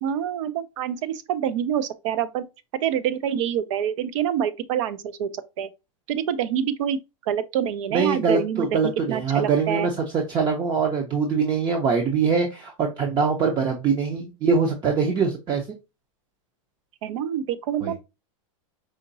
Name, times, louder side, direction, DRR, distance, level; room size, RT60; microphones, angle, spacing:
voice 1, 0.0-2.4 2.8-5.7 6.1-9.9 17.0-18.0, right 9 dB, 65° right, 0.6 m, -26 dB
voice 2, 7.9-15.7 17.8-17.9, right 5 dB, 25° right, 0.6 m, -23 dB
5.0 x 2.9 x 2.7 m
supercardioid pair, 145°, 17 cm